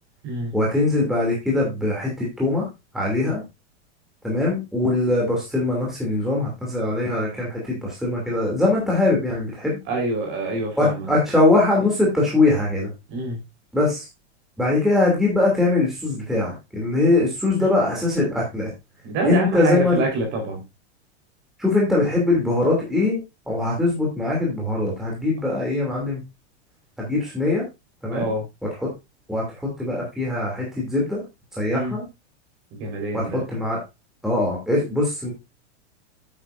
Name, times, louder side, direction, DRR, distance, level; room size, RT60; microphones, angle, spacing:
voice 1, 0.5-2.6 2.9-3.4 4.2-9.8 10.8-12.9 13.7-14.0 14.6-18.7 19.2-20.0 21.6-23.2 23.5-26.2 27.0-27.6 28.0-28.3 28.8-28.9 29.3-31.2 31.6-32.0 33.1-33.8 34.2-35.3, left 2 dB, ahead, -4 dB, 2.7 m, -22 dB
voice 2, 9.9-11.1 13.1-13.4 19.0-20.6 28.1-28.4 31.7-32.0 32.8-33.4, right 2 dB, 35° right, 2 dB, 4.3 m, -26 dB
9.2 x 8.8 x 2.6 m, 0.23 s
supercardioid pair, 165°, 34 cm